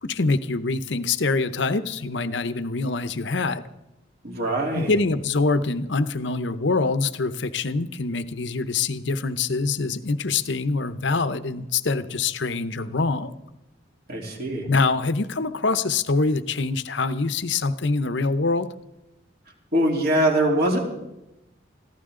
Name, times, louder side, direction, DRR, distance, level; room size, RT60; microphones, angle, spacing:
voice 1, 0.0-3.6 4.7-13.3 14.7-18.7, left 3 dB, 60° left, 12 dB, 0.8 m, -24 dB
voice 2, 4.2-5.0 14.1-14.6 19.7-20.8, right 1 dB, 50° right, 0 dB, 3.4 m, -22 dB
22.0 x 15.0 x 3.8 m, 0.94 s
head